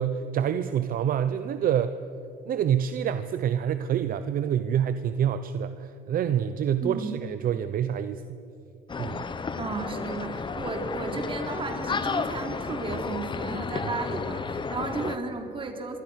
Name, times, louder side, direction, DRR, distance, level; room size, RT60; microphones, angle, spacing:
voice 1, 0.0-2.0 2.5-8.4 9.0-9.3, right 9 dB, 55° right, 11 dB, 0.9 m, -27 dB
voice 2, 6.8-7.2 9.6-16.0, right 3 dB, 30° right, 4 dB, 3.7 m, -34 dB
sound 1, 8.9-15.2, left 4 dB, 30° left, 1.3 m, -32 dB
27.0 x 24.0 x 6.4 m, 2.7 s
cardioid pair, 110°, 17 cm